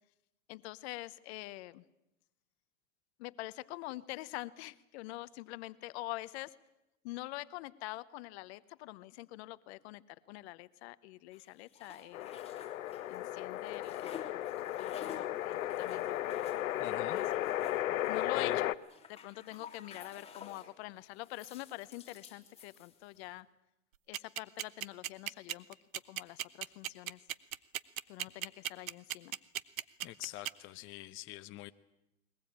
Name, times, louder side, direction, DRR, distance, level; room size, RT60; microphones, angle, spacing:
voice 1, 0.5-1.8 3.2-6.6 7.0-12.3 13.1-14.4 14.8-16.3 17.0-17.3 18.1-18.8 19.1-23.5 24.1-25.8 26.1-27.2 28.1-29.4, left 18 dB, 55° left, 16 dB, 0.9 m, -45 dB
sound 1, 11.3-13.3 13.5-20.7 21.2-23.3, left 6 dB, 15° left, 3.2 m, -52 dB
sound 2, 12.1-18.8, left 13 dB, 80° left, 0.9 m, -35 dB
voice 2, 16.8-17.2 18.4-18.6 30.0-31.7, left 16 dB, 30° left, 10 dB, 0.8 m, -44 dB
sound 3, 24.1-30.5, right 12 dB, 85° right, 1.0 m, -36 dB
21.5 x 20.5 x 8.8 m, 0.90 s
hypercardioid pair, 125°, 40 cm